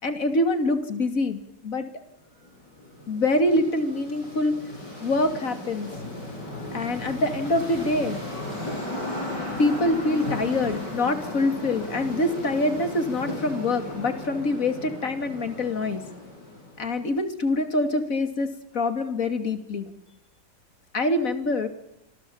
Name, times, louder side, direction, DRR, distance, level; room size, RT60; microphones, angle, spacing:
voice 1, 0.0-1.9 3.1-4.5 5.0-5.9 6.7-8.2 9.6-16.0 16.8-19.9 20.9-21.7, left 2 dB, 45° left, 8 dB, 3.1 m, -25 dB
sound 1, 2.4-16.9, left 1 dB, 65° left, 7.7 m, -35 dB
27.0 x 21.5 x 7.3 m, 0.78 s
omnidirectional pair, 2.0 m